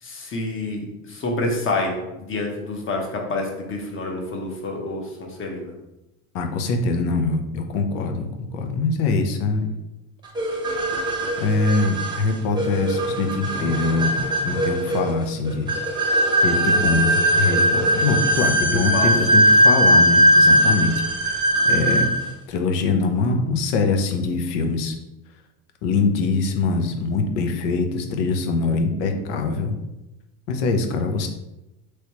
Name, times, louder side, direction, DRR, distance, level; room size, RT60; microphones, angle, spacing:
voice 1, 0.0-5.7 18.7-19.1, left 2 dB, 30° left, 0 dB, 1.0 m, -28 dB
voice 2, 6.3-9.8 11.4-14.1 14.4-15.7 16.4-20.9 21.2-22.1 22.5-25.0 25.8-29.8 30.5-31.3, left 3 dB, 70° left, 5 dB, 0.7 m, -23 dB
sound 1, 10.4-22.3, right 1 dB, 10° right, 0.8 m, -19 dB
3.1 x 3.1 x 2.9 m, 0.93 s
supercardioid pair, 100°, 39 cm